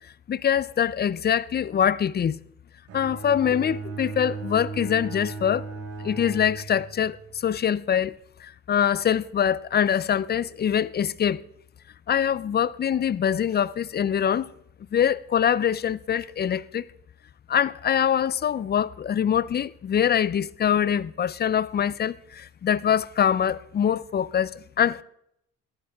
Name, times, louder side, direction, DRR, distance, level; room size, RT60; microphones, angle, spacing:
voice 1, 0.3-2.4 2.9-5.6 6.0-7.2 7.4-8.1 8.7-11.4 12.1-14.5 14.9-16.9 17.5-25.0, left 9 dB, 35° left, 0.4 m, -24 dB
Bowed string instrument, 2.9-7.1, right 4 dB, 85° right, 5.2 m, -36 dB
14.0 x 11.0 x 3.5 m
cardioid pair, 90°, 30 cm